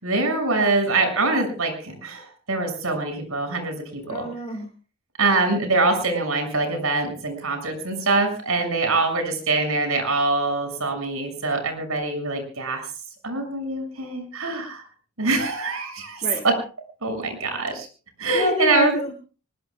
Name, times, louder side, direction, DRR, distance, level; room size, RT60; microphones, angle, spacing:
voice 1, 0.0-4.2 5.2-12.8 13.2-14.8 15.2-16.5 17.0-17.9 18.2-18.9, right 3 dB, 90° right, 5 dB, 6.8 m, -24 dB
voice 2, 4.0-4.7 16.2-16.4 18.3-19.1, left 1 dB, 30° left, 4 dB, 1.6 m, -28 dB
25.0 x 21.0 x 2.4 m, 0.38 s
head